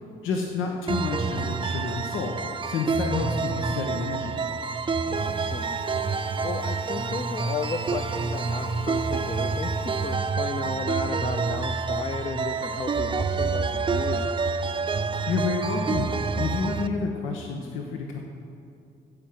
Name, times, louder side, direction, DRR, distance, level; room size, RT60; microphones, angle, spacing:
voice 1, 0.2-2.4 2.6-4.3 15.3-16.1 16.4-18.2, left 4 dB, 85° left, 1 dB, 1.0 m, -29 dB
sound 1, 0.9-16.9, right 4 dB, 25° right, 0.5 m, -28 dB
sound 2, 5.1-10.1, left 2 dB, 60° left, 2.0 m, -42 dB
voice 2, 5.1-5.8 6.4-14.4, left 5 dB, 30° left, 6 dB, 0.5 m, -34 dB
14.0 x 5.3 x 7.7 m, 2.6 s
cardioid pair, 90°, 20 cm